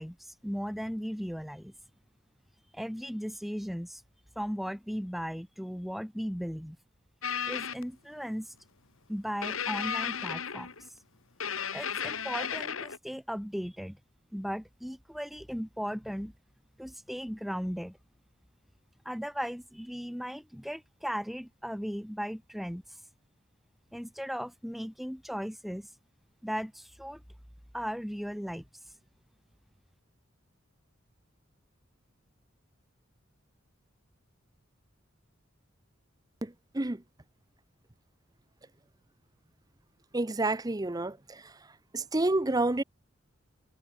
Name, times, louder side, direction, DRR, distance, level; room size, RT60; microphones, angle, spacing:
voice 1, 0.0-1.7 2.7-4.0 4.3-6.8 7.5-8.5 9.1-10.9 11.7-14.0 14.3-16.3 16.8-18.0 19.0-23.0 23.9-25.9 26.4-27.2 27.7-28.6, equal, ahead, 1.7 m, -37 dB
sound 1, 7.2-7.8 9.4-10.9 11.4-13.0, left 7 dB, 80° left, 2.3 m, -34 dB
voice 2, 36.4-37.0 40.1-41.4 41.9-42.8, right 2 dB, 20° right, 0.6 m, -29 dB
head